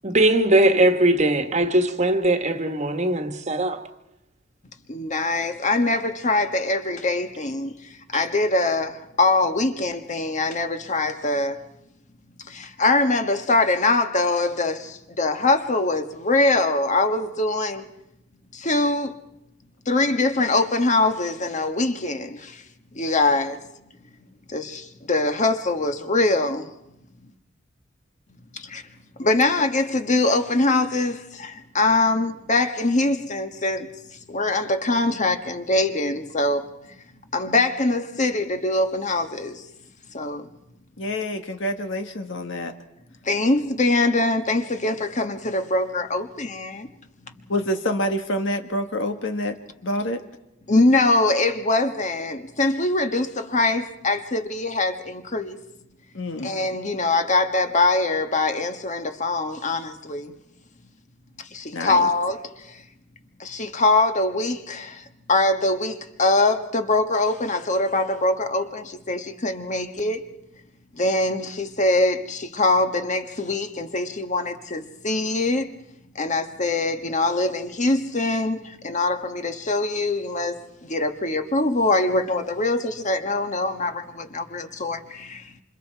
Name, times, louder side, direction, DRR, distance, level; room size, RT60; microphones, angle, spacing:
voice 1, 0.0-3.8 8.1-8.2, right 1 dB, 35° right, 1.5 m, -20 dB
voice 2, 4.9-7.7 8.1-11.6 12.5-17.9 18.5-19.1 19.9-22.6 22.9-23.6 24.5-26.7 28.5-28.8 29.2-33.9 34.3-36.7 37.3-39.6 40.1-40.5 43.2-46.9 47.2-47.3 50.7-55.6 56.4-60.4 61.4-62.8 63.4-65.0 65.3-70.2 70.9-75.7 76.1-85.6, left 2 dB, 40° left, 1.4 m, -23 dB
voice 3, 41.0-42.7 47.5-49.6 49.8-50.2 56.1-56.5 61.7-62.1, left 1 dB, 70° left, 1.7 m, -27 dB
28.0 x 26.5 x 4.6 m
head